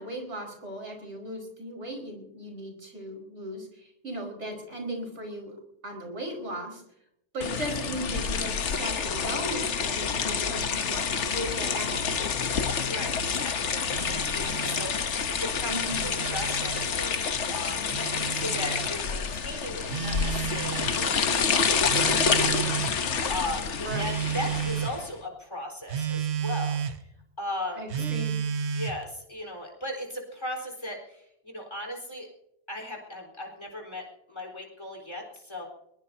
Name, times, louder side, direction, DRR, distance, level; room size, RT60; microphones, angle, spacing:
voice 1, 0.0-5.5 5.8-6.8 7.3-12.5 15.7-16.1 23.8-24.0 27.8-28.4, equal, 90° right, 1 dB, 5.4 m, -37 dB
sound 1, 7.4-25.1, left 6 dB, 85° left, 1.4 m, -28 dB
voice 2, 12.8-26.8 27.4-28.0 28.7-32.3 32.7-35.7, left 1 dB, 25° left, 0 dB, 4.5 m, -37 dB
Telephone, 13.9-15.0 15.7-16.9 17.9-18.9 19.9-21.0 21.9-23.0 23.9-25.0 25.9-27.0 27.9-29.0, right 8 dB, 70° right, 1.3 m, -32 dB
22.0 x 21.0 x 2.8 m, 0.78 s
omnidirectional pair, 1.2 m